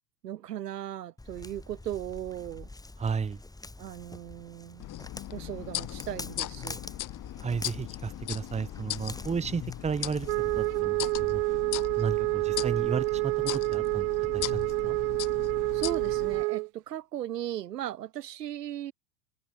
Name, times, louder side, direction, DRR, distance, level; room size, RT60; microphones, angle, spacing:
voice 1, 0.2-2.7 3.8-4.9 5.3-6.8 15.7-18.9, right 12 dB, 85° right, 2.8 m, -37 dB
Walk footsteps, 1.2-10.8, left 2 dB, 10° left, 5.3 m, -46 dB
voice 2, 3.0-3.4 7.4-10.3 10.5-11.4 12.0-14.1 14.3-15.0, right 5 dB, 15° right, 1.3 m, -33 dB
sound 1, 4.8-16.4, left 14 dB, 40° left, 4.7 m, -38 dB
Wind instrument woodwind instrument, 10.3-16.7, right 26 dB, 60° right, 1.1 m, -28 dB
hypercardioid pair, 105°, 47 cm